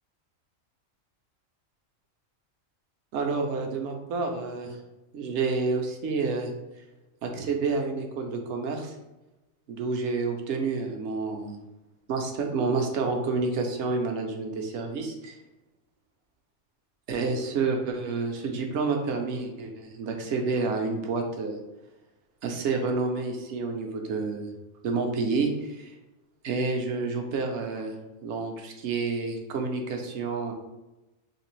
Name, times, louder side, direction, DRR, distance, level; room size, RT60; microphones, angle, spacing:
voice 1, 3.1-4.8 5.1-6.5 7.2-8.9 9.7-11.6 12.1-15.3 17.1-21.6 22.4-24.5 24.8-25.9 26.4-27.9 28.2-30.5, right 4 dB, 65° right, 3 dB, 0.8 m, -29 dB
3.2 x 2.8 x 3.1 m, 1.0 s
omnidirectional pair, 1.4 m